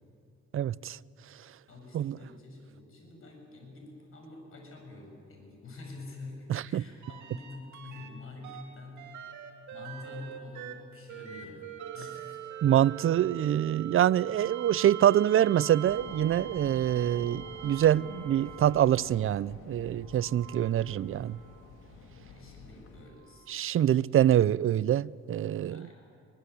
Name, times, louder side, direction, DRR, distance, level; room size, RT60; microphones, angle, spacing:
voice 1, 0.5-1.0 1.9-2.2 6.5-6.8 12.6-21.4 23.5-25.9, right 11 dB, 45° right, 0.5 m, -25 dB
voice 2, 1.7-11.7 11.9-12.5 22.1-23.5 25.7-25.9, left 3 dB, 45° left, 7.8 m, -47 dB
sound 1, 7.0-8.1 8.4-19.2 20.1-21.6 23.3-23.4, right 9 dB, 70° right, 2.7 m, -43 dB
sound 2, 15.8-23.1, left 4 dB, 85° left, 2.6 m, -49 dB
23.0 x 21.0 x 8.4 m
cardioid pair, 90°, 30 cm